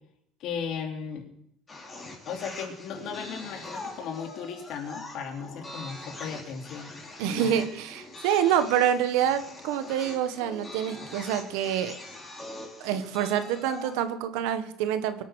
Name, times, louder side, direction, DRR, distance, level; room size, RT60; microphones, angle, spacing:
voice 1, 0.4-1.2 2.2-6.9 7.3-7.5, left 6 dB, 60° left, 4 dB, 3.0 m, -36 dB
sound 1, 1.7-14.0, left 2 dB, 20° left, 4.0 m, -43 dB
voice 2, 7.2-12.0 12.8-15.2, right 9 dB, 90° right, 10 dB, 1.5 m, -27 dB
23.0 x 8.3 x 6.4 m, 0.74 s
cardioid pair, 140°, 0 cm